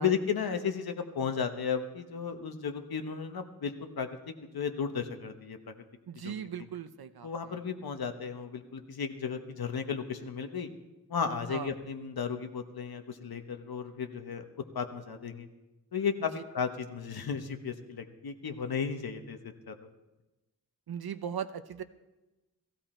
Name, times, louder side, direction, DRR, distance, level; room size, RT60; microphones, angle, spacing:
voice 1, 0.0-5.7 6.2-6.7 7.2-10.7 11.1-15.5 15.9-19.4 19.7-19.9, left 6 dB, 85° left, 6 dB, 1.2 m, -34 dB
voice 2, 6.1-7.6 11.5-11.7 16.3-16.4 20.9-21.8, right 8 dB, 85° right, 11 dB, 0.8 m, -39 dB
16.0 x 16.0 x 4.4 m, 1.1 s
wide cardioid pair, 120°, 36 cm